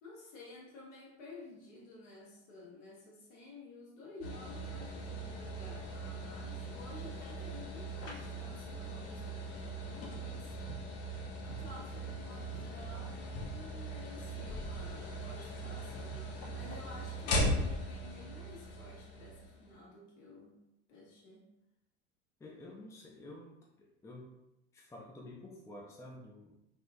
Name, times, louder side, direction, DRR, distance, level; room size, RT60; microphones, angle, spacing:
voice 1, 0.0-10.5 11.4-20.6 20.9-21.5, left 3 dB, 60° left, -3 dB, 1.5 m, -52 dB
sound 1, 4.2-19.7, equal, 40° left, 0.9 m, -39 dB
voice 2, 22.4-24.3 24.7-26.5, left 1 dB, 10° left, -1 dB, 0.5 m, -50 dB
3.5 x 2.9 x 2.6 m, 0.88 s
hypercardioid pair, 80°, 35 cm